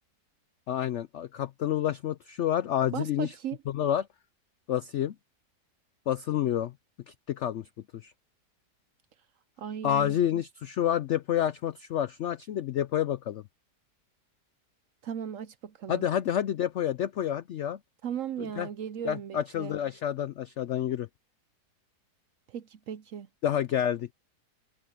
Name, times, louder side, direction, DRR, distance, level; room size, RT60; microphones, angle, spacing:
voice 1, 0.7-3.3 3.7-4.1 4.7-5.1 6.1-6.7 7.1-7.7 7.9-8.1 9.8-13.4 15.9-17.8 18.4-18.7 19.0-21.1 23.4-24.1, left 10 dB, 75° left, 0.6 m, -29 dB
voice 2, 2.9-3.6 9.6-10.4 15.0-16.1 18.0-19.8 22.5-23.3, right 9 dB, 65° right, 0.9 m, -37 dB
omnidirectional pair, 1.8 m